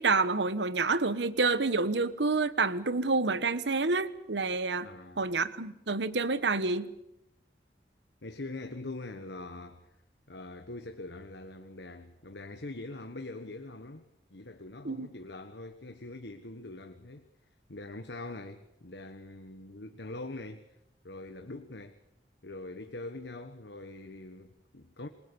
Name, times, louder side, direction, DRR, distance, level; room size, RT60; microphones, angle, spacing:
voice 1, 0.0-4.9 5.2-6.9 14.8-15.1, right 3 dB, 90° right, 1.2 m, -28 dB
voice 2, 4.8-5.3 8.2-9.9 10.3-17.3 17.7-20.8 21.0-22.0 22.4-25.1, left 2 dB, 80° left, 1.5 m, -43 dB
27.5 x 22.0 x 7.1 m
head